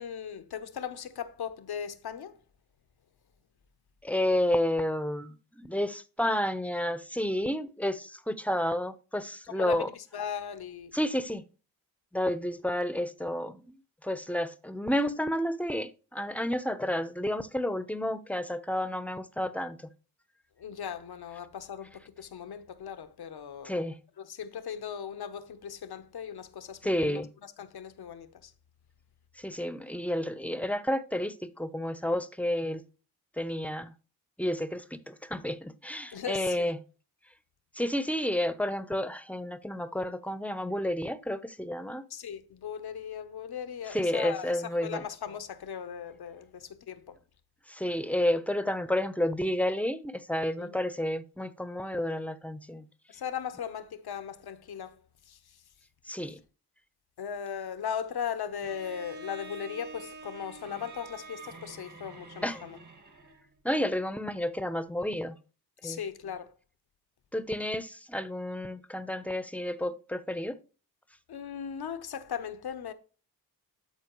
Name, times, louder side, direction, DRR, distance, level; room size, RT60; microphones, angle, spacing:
voice 1, 0.0-2.4 9.5-10.9 20.6-23.9 24.2-28.5 36.1-36.7 42.1-47.2 50.6-50.8 53.1-55.0 55.3-55.6 57.2-62.8 65.8-66.5 71.3-72.9, left 8 dB, 75° left, 0.9 m, -38 dB
voice 2, 4.0-9.9 10.9-11.4 12.1-13.7 14.0-19.9 23.6-24.0 26.8-27.3 29.4-32.8 33.4-33.9 34.4-36.8 37.7-42.0 43.9-45.0 47.7-52.8 56.1-56.4 62.4-62.6 63.6-65.4 65.8-66.0 67.3-70.6, left 1 dB, 5° left, 0.7 m, -31 dB
Bowed string instrument, 58.6-63.5, right 3 dB, 50° right, 1.8 m, -47 dB
13.0 x 4.4 x 3.0 m
cardioid pair, 55°, 39 cm